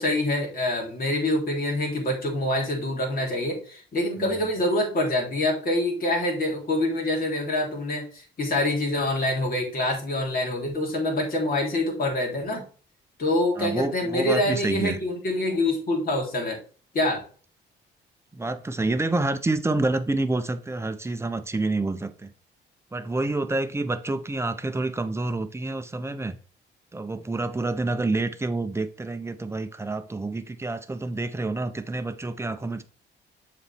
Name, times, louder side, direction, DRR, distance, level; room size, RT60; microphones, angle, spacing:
voice 1, 0.0-12.6 13.2-16.6 16.9-17.2, left 1 dB, 50° left, 3.3 m, -26 dB
voice 2, 13.6-15.0 18.3-22.3 22.9-26.4 26.9-32.8, right 2 dB, 15° right, 0.8 m, -28 dB
7.1 x 4.3 x 3.6 m
cardioid pair, 90°, 20 cm